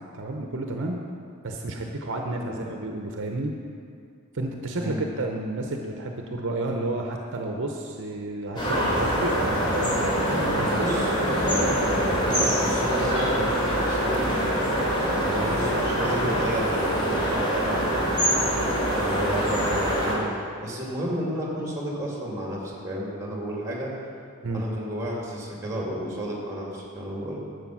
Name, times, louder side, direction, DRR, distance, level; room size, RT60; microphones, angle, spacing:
voice 1, 0.1-1.0 1.4-3.5 4.3-10.9 18.5-18.6 24.4-24.6, right 2 dB, 60° right, 2 dB, 0.8 m, -31 dB
sound 1, 8.6-20.1, equal, 20° left, 3.4 m, -24 dB
voice 2, 10.8-11.6 12.1-14.5 15.0-20.3 20.6-23.9 24.5-27.4, right 1 dB, 15° right, -3 dB, 2.4 m, -31 dB
11.5 x 8.1 x 6.1 m, 2.3 s
head